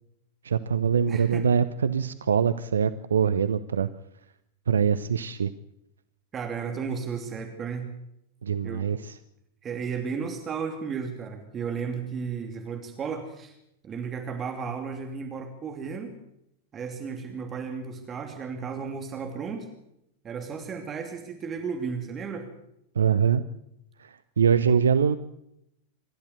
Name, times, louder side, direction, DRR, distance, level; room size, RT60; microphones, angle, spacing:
voice 1, 0.4-3.9 4.7-5.5 8.4-9.2 23.0-23.4 24.0-25.2, right 7 dB, 70° right, 13 dB, 0.7 m, -23 dB
voice 2, 1.1-1.4 6.3-7.9 8.6-8.9 9.6-13.6 13.8-16.2 16.7-19.7 20.2-22.5, right 6 dB, 25° right, 5 dB, 2.6 m, -34 dB
26.0 x 13.5 x 8.0 m, 0.79 s
figure-of-eight pair, 90°, 0 cm